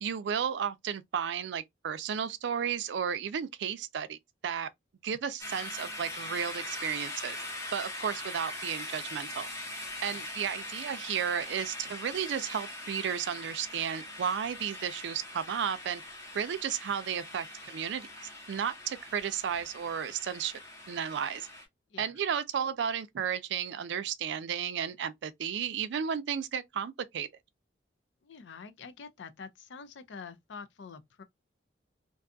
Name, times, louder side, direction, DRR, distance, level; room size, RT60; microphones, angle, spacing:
voice 1, 0.0-4.2 4.4-4.7 5.0-7.4 7.7-9.5 10.0-16.0 16.3-18.1 18.5-20.5 20.9-21.5 22.0-27.3, right 8 dB, 65° right, 0.4 m, -33 dB
sound 1, 5.4-21.6, left 1 dB, 15° left, 0.8 m, -42 dB
voice 2, 28.2-31.2, left 5 dB, 75° left, 0.5 m, -46 dB
2.6 x 2.3 x 2.5 m
head